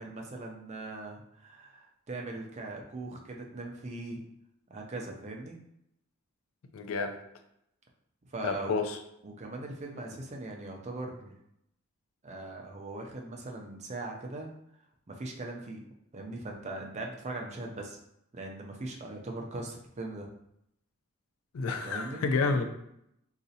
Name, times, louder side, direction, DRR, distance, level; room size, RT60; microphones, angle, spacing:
voice 1, 0.0-4.2 4.7-5.6 8.3-8.8 9.2-11.4 12.2-14.5 15.1-15.8 16.1-18.0 18.3-20.3 21.8-22.2, right 2 dB, 30° right, 1 dB, 0.4 m, -40 dB
voice 2, 6.7-7.2 8.4-9.0 21.5-22.7, left 4 dB, 75° left, 6 dB, 0.4 m, -29 dB
4.0 x 2.4 x 2.7 m, 0.79 s
head